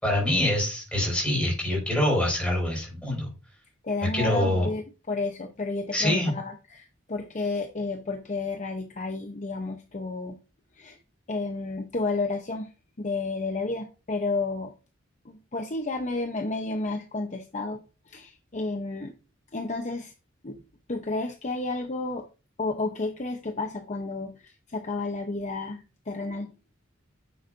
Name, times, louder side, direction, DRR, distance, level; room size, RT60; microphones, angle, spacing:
voice 1, 0.0-3.3 4.1-4.7 5.9-6.3, left 1 dB, 5° left, -3 dB, 5.2 m, -25 dB
voice 2, 3.8-10.4 10.8-11.0 11.3-12.7 13.0-14.7 15.2-19.1 19.5-20.1 20.4-20.6 20.9-22.2 22.6-26.5, left 3 dB, 35° left, 5 dB, 0.8 m, -31 dB
9.5 x 7.1 x 2.6 m, 0.32 s
head